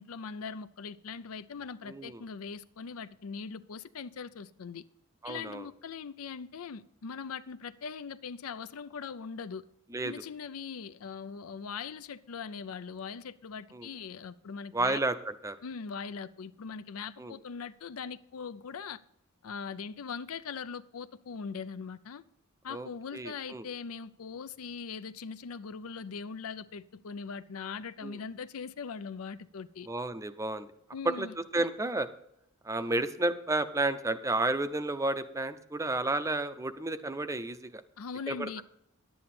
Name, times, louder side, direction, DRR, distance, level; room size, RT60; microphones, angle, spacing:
voice 1, 0.0-4.8 5.2-9.6 10.0-15.0 15.6-19.0 19.4-22.2 22.6-29.9 30.9-31.3 38.0-38.6, left 5 dB, 85° left, 0.5 m, -41 dB
voice 2, 1.9-2.2 5.2-5.7 9.9-10.1 13.7-13.9 14.7-15.2 15.4-15.6 17.2-17.3 22.7-23.6 28.0-28.2 29.9-30.7 31.0-31.3 31.5-32.1 32.6-37.8 38.3-38.5, right 2 dB, 15° right, 0.5 m, -31 dB
11.0 x 9.3 x 4.3 m
head